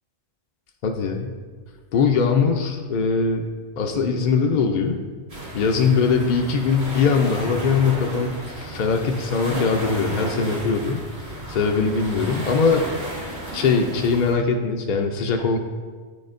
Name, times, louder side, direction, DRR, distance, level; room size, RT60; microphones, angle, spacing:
voice 1, 0.8-1.3 1.9-3.5 3.8-5.0 5.5-11.0 11.5-12.9 13.5-15.6, left 5 dB, 60° left, 2 dB, 0.5 m, -21 dB
sound 1, 5.3-14.3, right 1 dB, 65° right, 1.8 m, -33 dB
9.8 x 4.2 x 2.5 m, 1.5 s
omnidirectional pair, 1.2 m